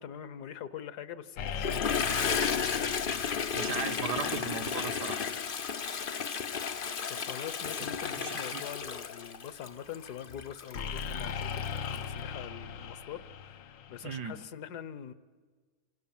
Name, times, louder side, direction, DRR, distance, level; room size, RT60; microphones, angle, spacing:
voice 1, 0.0-2.2 7.1-11.6 11.9-15.1, left 9 dB, 65° left, 15 dB, 1.5 m, -44 dB
sound 1, 1.4-5.1 10.8-14.5, left 6 dB, 85° left, 1.7 m, -39 dB
Toilet flush, 1.5-12.0, left 6 dB, 45° left, 0.7 m, -33 dB
voice 2, 3.5-5.2 8.2-8.6 14.0-14.4, right 7 dB, 65° right, 8 dB, 1.7 m, -37 dB
26.5 x 26.5 x 7.3 m, 1.5 s
omnidirectional pair, 1.9 m